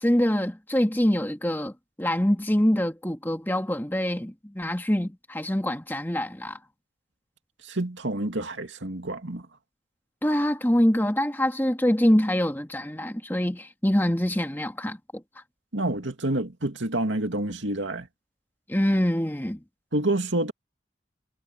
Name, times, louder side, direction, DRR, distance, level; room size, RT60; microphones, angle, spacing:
voice 1, 0.0-6.6 10.2-15.2 18.7-19.6, equal, 10° left, 1.7 m, -25 dB
voice 2, 7.6-9.5 15.7-18.1 19.9-20.5, right 1 dB, 85° right, 2.4 m, -28 dB
head